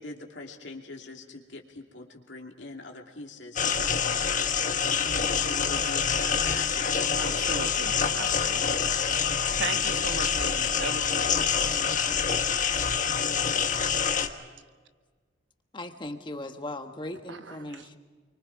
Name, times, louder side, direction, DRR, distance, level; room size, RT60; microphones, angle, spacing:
voice 1, 0.0-7.8, left 2 dB, 65° left, 1 dB, 2.7 m, -43 dB
sound 1, 3.6-14.3, left 6 dB, 40° left, 1.4 m, -26 dB
voice 2, 7.2-8.8 9.6-11.3 17.3-18.0, right 4 dB, 70° right, 9 dB, 1.2 m, -38 dB
voice 3, 15.7-18.0, left 1 dB, 25° left, 6 dB, 1.3 m, -38 dB
29.5 x 24.0 x 4.7 m, 1.5 s
head